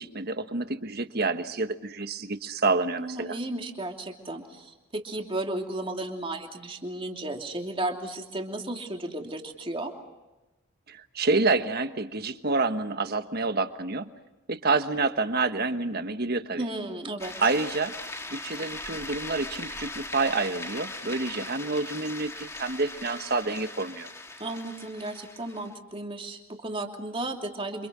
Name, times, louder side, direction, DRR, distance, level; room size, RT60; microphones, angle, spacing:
voice 1, 0.0-3.4 10.9-14.1 14.5-16.7 17.4-17.9 18.3-24.1, right 3 dB, 50° right, 9 dB, 1.4 m, -28 dB
voice 2, 3.0-9.9 16.6-17.3 24.4-27.9, right 2 dB, 25° right, 3 dB, 2.9 m, -34 dB
sound 1, 17.2-25.7, left 2 dB, 15° left, 1.8 m, -40 dB
30.0 x 26.0 x 6.3 m, 1.0 s
head